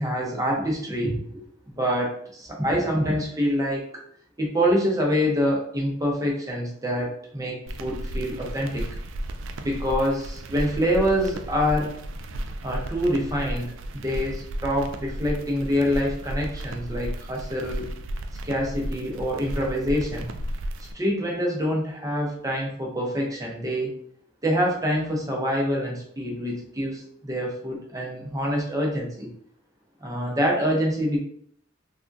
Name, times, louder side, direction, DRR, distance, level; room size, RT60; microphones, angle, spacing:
voice 1, 0.0-1.4 1.7-3.9 4.4-8.9 9.6-11.9 12.6-17.9 18.4-20.3 20.9-23.9 24.4-29.3 30.0-31.2, equal, 20° right, -1 dB, 0.7 m, -26 dB
sound 1, 7.7-20.9, right 1 dB, 75° right, 0.3 m, -34 dB
3.4 x 2.3 x 2.5 m, 0.64 s
head